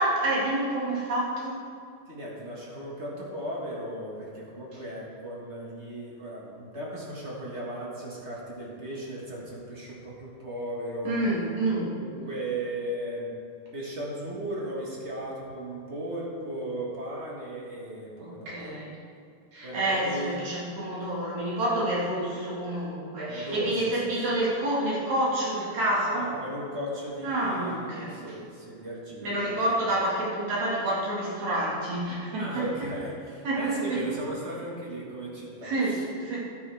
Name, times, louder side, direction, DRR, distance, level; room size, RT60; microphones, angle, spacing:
voice 1, 0.0-1.6 11.0-11.9 18.2-18.9 19.5-26.3 27.2-28.2 29.2-32.6 33.4-34.0 35.6-36.4, right 1 dB, 60° right, -6 dB, 3.3 m, -28 dB
voice 2, 2.1-11.2 11.9-13.3 13.7-18.8 19.6-20.3 21.0-21.1 23.3-23.7 24.3-24.4 26.1-29.6 32.4-36.0, right 1 dB, 35° right, -4 dB, 1.1 m, -36 dB
12.0 x 9.7 x 3.5 m, 2.4 s
omnidirectional pair, 3.8 m